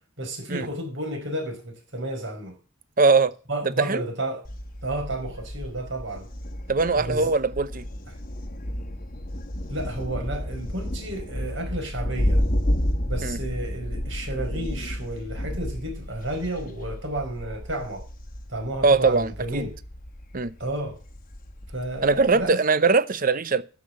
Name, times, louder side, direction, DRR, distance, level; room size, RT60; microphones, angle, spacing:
voice 1, 0.2-2.5 3.5-4.4 4.8-6.3 6.9-7.3 9.7-12.4 13.1-18.0 18.5-19.7 20.6-21.0 21.7-22.6, right 1 dB, 65° right, 5.1 m, -32 dB
voice 2, 3.0-3.3 3.8-4.0 6.7-7.9 13.2-13.4 18.8-19.7 20.3-20.5 22.0-23.6, right 4 dB, 45° right, 0.7 m, -21 dB
Thunder, 4.4-22.5, equal, 40° left, 1.2 m, -31 dB
13.0 x 5.7 x 7.7 m
head